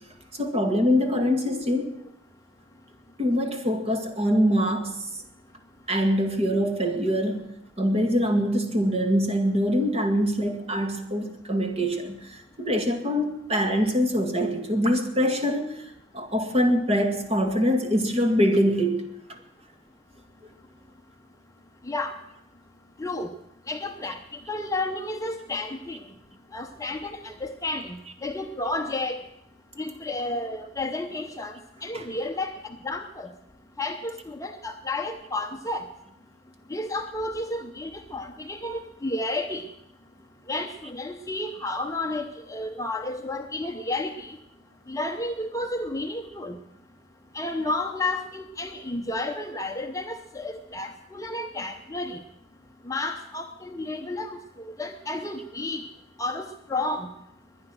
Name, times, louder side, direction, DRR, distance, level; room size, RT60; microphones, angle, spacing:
voice 1, 0.3-1.9 3.2-5.0 5.9-7.5 7.8-19.1 24.0-24.1 31.9-32.1, equal, 30° right, 4 dB, 1.9 m, -24 dB
voice 2, 23.0-23.3 23.7-24.2 24.5-26.0 26.5-29.2 29.8-31.5 31.8-32.5 32.8-33.3 33.8-35.8 36.7-39.6 40.5-44.4 44.9-46.6 47.3-52.2 52.9-54.4 54.6-55.8 56.2-57.1, left 2 dB, 15° left, 5 dB, 0.8 m, -31 dB
22.0 x 9.9 x 6.3 m, 0.80 s
head